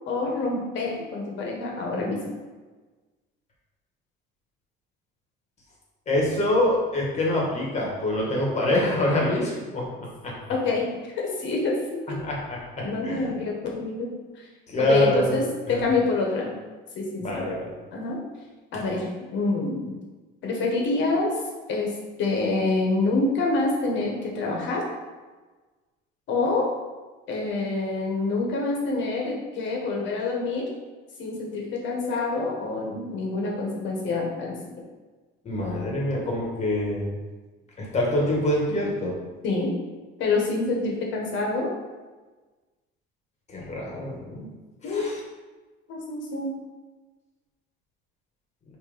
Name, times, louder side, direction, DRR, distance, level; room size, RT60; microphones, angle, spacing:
voice 1, 0.1-2.2 10.5-12.2 12.8-14.1 14.8-15.4 15.7-16.5 16.9-17.4 17.9-18.2 18.7-20.0 20.4-21.4 21.7-21.9 22.2-24.8 26.3-26.7 27.3-30.6 31.2-34.5 39.4-39.7 40.2-41.7 44.8-45.1 45.9-46.5, left 3 dB, 60° left, -1 dB, 1.6 m, -26 dB
voice 2, 6.1-10.3 12.2-13.2 14.7-15.4 15.7-15.8 17.2-17.7 35.4-37.1 37.8-39.1 43.5-44.5 44.9-45.2, left 1 dB, 30° left, -3 dB, 1.7 m, -25 dB
5.7 x 3.3 x 5.1 m, 1.3 s
cardioid pair, 155°, 21 cm